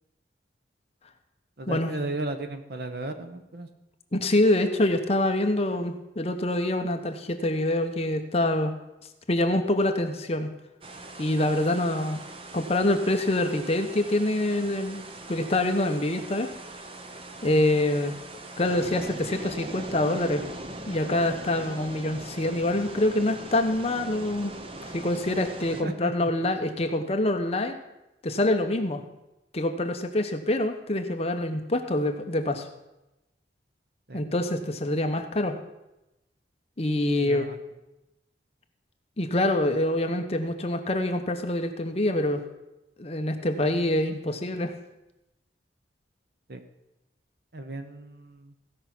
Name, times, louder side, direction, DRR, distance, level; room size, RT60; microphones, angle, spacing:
voice 1, 1.6-3.7 25.8-26.3 34.1-34.2 37.2-37.6 46.5-46.6 47.5-48.5, right 2 dB, 60° right, 7 dB, 1.0 m, -35 dB
voice 2, 4.1-8.7 9.3-10.5 11.2-12.2 12.5-15.0 15.3-16.5 17.4-18.1 18.6-20.4 20.9-24.5 24.9-27.8 28.2-29.0 29.5-32.7 34.1-35.6 36.8-37.5 39.2-42.4 43.0-44.7, left 1 dB, 35° left, 6 dB, 0.9 m, -25 dB
sound 1, 10.8-25.8, right 2 dB, 30° right, 0.9 m, -41 dB
15.5 x 5.7 x 6.0 m, 0.95 s
head